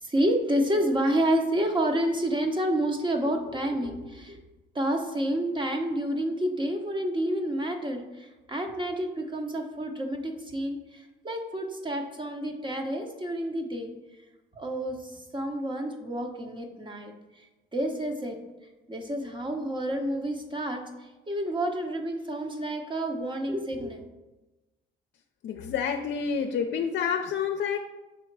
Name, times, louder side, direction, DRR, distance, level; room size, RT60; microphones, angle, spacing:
voice 1, 0.0-4.4 4.7-13.9 14.5-17.5 17.7-18.4 18.9-24.1, right 1 dB, 25° right, 3 dB, 1.0 m, -29 dB
voice 2, 25.4-27.8, left 7 dB, 65° left, 4 dB, 0.5 m, -28 dB
5.5 x 3.8 x 4.6 m, 1.1 s
cardioid pair, 90°, 20 cm